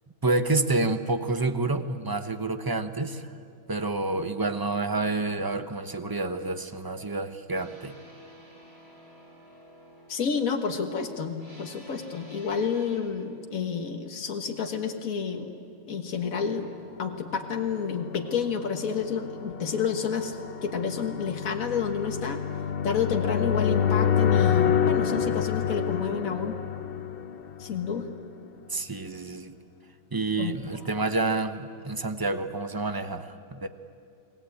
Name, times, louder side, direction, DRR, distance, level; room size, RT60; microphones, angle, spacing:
voice 1, 0.2-3.3 3.7-8.0 28.7-29.6 30.1-33.7, right 2 dB, 20° right, 9 dB, 0.8 m, -28 dB
sound 1, 7.5-13.0, equal, 45° right, 4.9 m, -51 dB
voice 2, 10.1-15.5 15.9-16.7 17.0-22.4 22.8-26.6 27.6-28.1 30.4-30.5, left 6 dB, 75° left, 3 dB, 1.9 m, -30 dB
sound 2, 17.4-28.2, left 8 dB, 50° left, 0.9 m, -28 dB
29.5 x 20.0 x 8.5 m, 2.4 s
omnidirectional pair, 1.5 m